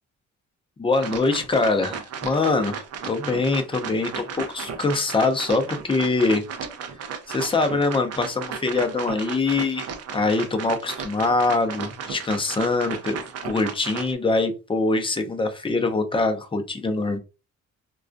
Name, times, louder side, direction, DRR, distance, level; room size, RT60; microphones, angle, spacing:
voice 1, 0.8-6.4 7.3-13.2 13.4-17.2, left 3 dB, 20° left, 0.5 m, -23 dB
sound 1, 0.9-14.1, right 6 dB, 55° right, 0.5 m, -35 dB
2.3 x 2.2 x 2.5 m
cardioid pair, 90°, 30 cm